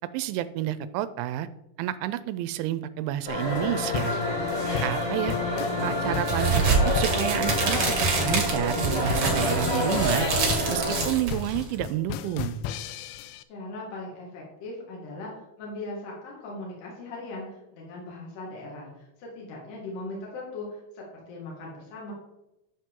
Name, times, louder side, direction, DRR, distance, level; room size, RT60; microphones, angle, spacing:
voice 1, 0.1-1.5 1.8-4.1 4.8-5.4 5.8-7.8 8.2-10.3 10.7-12.6, right 13 dB, 85° right, 14 dB, 2.8 m, -30 dB
sound 1, 3.3-11.1, left 1 dB, 30° left, 2.4 m, -28 dB
sound 2, 3.9-13.4, left 9 dB, 85° left, 2.9 m, -35 dB
sound 3, 6.2-11.7, right 4 dB, 45° right, 1.6 m, -26 dB
voice 2, 13.5-22.1, left 2 dB, 60° left, -3 dB, 3.9 m, -39 dB
12.5 x 7.5 x 3.7 m, 0.90 s
omnidirectional pair, 5.7 m